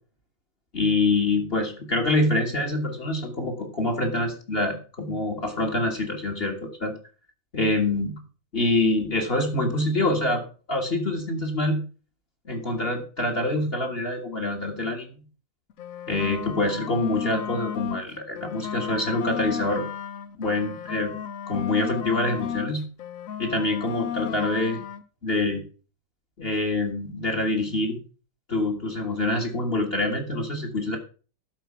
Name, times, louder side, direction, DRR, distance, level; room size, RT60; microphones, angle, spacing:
voice 1, 0.7-6.9 7.5-8.2 8.5-10.4 10.7-11.8 12.4-15.2 16.1-19.8 20.4-21.1 21.5-22.8 23.4-24.8 25.2-25.6 26.4-28.0 28.5-31.0, left 2 dB, 35° left, 4 dB, 1.8 m, -25 dB
sound 1, 15.7-18.0 18.4-22.7 23.0-25.0, left 8 dB, 60° left, 1.0 m, -34 dB
12.0 x 4.5 x 5.9 m, 0.37 s
omnidirectional pair, 2.0 m